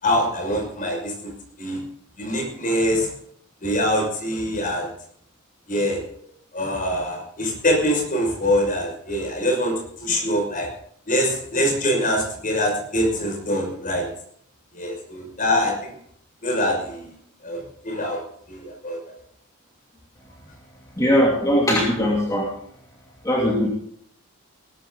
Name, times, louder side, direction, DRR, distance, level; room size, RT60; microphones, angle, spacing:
voice 1, 0.0-1.3 1.6-1.8 2.2-3.1 3.6-4.9 5.7-6.0 6.5-9.7 10.0-10.7 11.1-14.1 14.7-15.7 16.4-17.1 17.4-18.2 18.5-19.1, equal, 40° left, 1 dB, 5.7 m, -24 dB
voice 2, 21.0-22.5 23.2-23.7, equal, 15° left, -3 dB, 2.6 m, -20 dB
20.0 x 13.0 x 3.9 m, 0.64 s
head